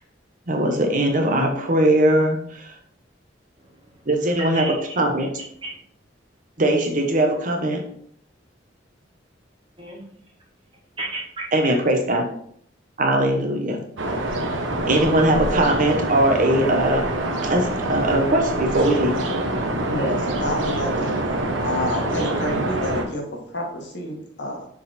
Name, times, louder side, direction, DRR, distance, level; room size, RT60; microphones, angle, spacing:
voice 1, 0.5-2.7 4.1-5.3 6.6-7.8 11.5-12.2 13.0-13.8 14.9-17.1 17.5-19.3, right 1 dB, 45° right, 3 dB, 1.0 m, -20 dB
voice 2, 3.6-4.1 4.4-5.0 5.6-5.8 9.8-10.0 11.0-11.7, right 2 dB, 25° right, -3 dB, 1.9 m, -34 dB
sound 1, 14.0-23.0, right 1 dB, 85° right, 1.1 m, -25 dB
voice 3, 19.9-21.1 21.6-24.7, left 1 dB, 60° left, 0 dB, 1.8 m, -29 dB
6.8 x 4.0 x 4.2 m, 0.65 s
head